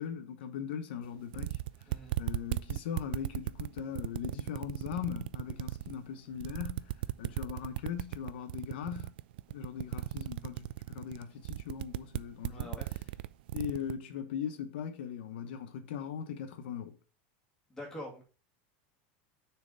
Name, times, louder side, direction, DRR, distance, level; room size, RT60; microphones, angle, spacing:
voice 1, 0.0-1.6 2.2-6.9 7.2-9.1 9.5-12.7 13.5-17.0, left 8 dB, 80° left, 1.0 m, -39 dB
sound 1, 1.0-1.1 1.3-6.0 6.4-13.9, right 16 dB, 65° right, 0.4 m, -36 dB
voice 2, 1.9-2.2 12.5-12.9 17.7-18.2, left 1 dB, 10° left, 2.3 m, -44 dB
6.7 x 4.5 x 5.1 m
supercardioid pair, 180°, 6 cm